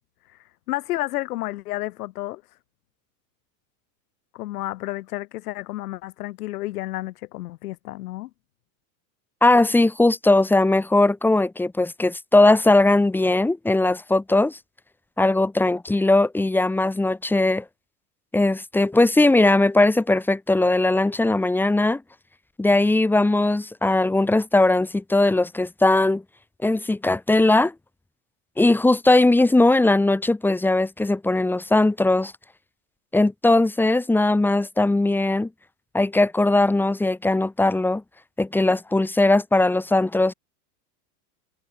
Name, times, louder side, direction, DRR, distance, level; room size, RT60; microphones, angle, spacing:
voice 1, 0.7-2.4 4.3-8.3, left 17 dB, 75° left, 3.1 m, -31 dB
voice 2, 9.4-14.6 15.2-17.6 18.3-22.0 22.6-26.2 26.6-27.7 28.6-32.3 33.1-35.5 35.9-38.0 38.4-40.3, left 2 dB, 5° left, 1.4 m, -19 dB
supercardioid pair, 150°, 46 cm